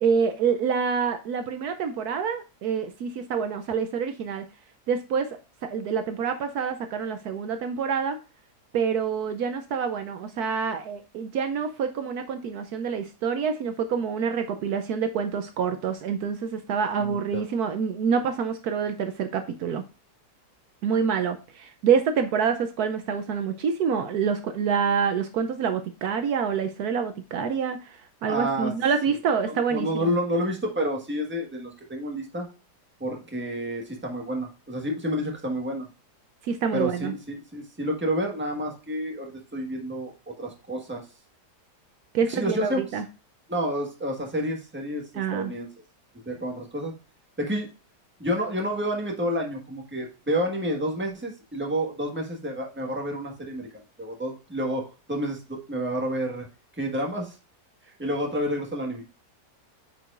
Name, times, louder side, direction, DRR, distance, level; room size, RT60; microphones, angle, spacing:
voice 1, 0.0-4.4 4.9-5.3 5.6-8.2 8.7-19.8 20.8-30.1 36.4-37.1 42.1-43.0 45.1-45.5, right 6 dB, 70° right, 8 dB, 1.1 m, -27 dB
voice 2, 17.0-17.4 28.3-28.7 29.1-29.2 29.4-32.5 33.0-35.9 36.7-41.0 42.3-43.0 43.5-45.0 45.3-45.7 46.2-46.9 47.4-47.7 48.2-53.7 54.0-56.5 56.8-57.4 58.0-59.0, equal, 5° right, 0 dB, 1.3 m, -29 dB
8.9 x 4.7 x 2.5 m, 0.33 s
omnidirectional pair, 1.8 m